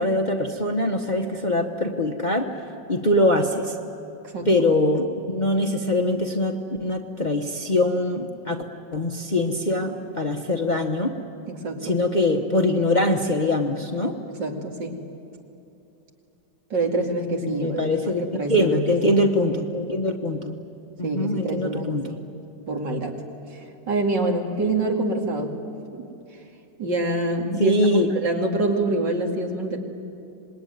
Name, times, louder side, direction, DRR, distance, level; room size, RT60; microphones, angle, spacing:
voice 1, 0.0-2.5 2.9-3.7 4.5-8.6 8.9-11.1 11.8-14.2 17.3-20.6 21.0-22.2 27.6-28.1, left 1 dB, 30° left, 3 dB, 1.0 m, -23 dB
voice 2, 11.5-11.9 14.3-14.9 16.7-19.1 21.0-22.0 22.7-23.2 23.5-25.5 25.9-26.1 26.8-27.8 28.2-29.8, right 2 dB, 70° right, 1 dB, 3.1 m, -26 dB
26.0 x 21.0 x 9.5 m, 2.8 s
omnidirectional pair, 2.0 m